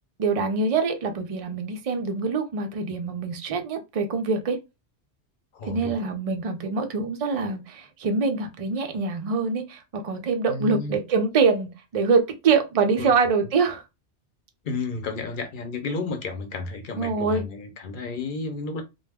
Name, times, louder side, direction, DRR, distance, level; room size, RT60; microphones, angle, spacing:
voice 1, 0.2-4.6 5.7-13.8 17.0-17.4, right 4 dB, 50° right, 0.4 m, -24 dB
voice 2, 5.5-6.1 10.5-11.0 13.0-13.1 14.6-18.8, left 3 dB, 55° left, 0.7 m, -32 dB
2.2 x 2.0 x 3.4 m
omnidirectional pair, 1.2 m